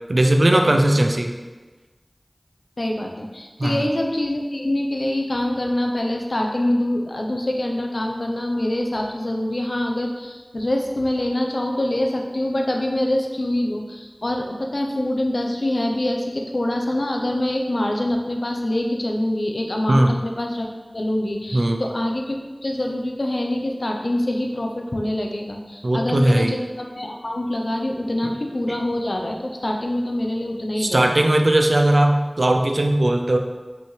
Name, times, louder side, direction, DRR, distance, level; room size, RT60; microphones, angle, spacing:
voice 1, 0.1-1.4 3.6-3.9 19.9-20.1 21.5-21.8 25.8-26.5 30.8-33.4, right 1 dB, 80° right, 4 dB, 0.6 m, -18 dB
voice 2, 2.8-20.7 20.9-31.1, left 1 dB, 70° left, 1 dB, 0.8 m, -25 dB
6.1 x 6.1 x 3.4 m, 1.3 s
wide cardioid pair, 40°, 0 cm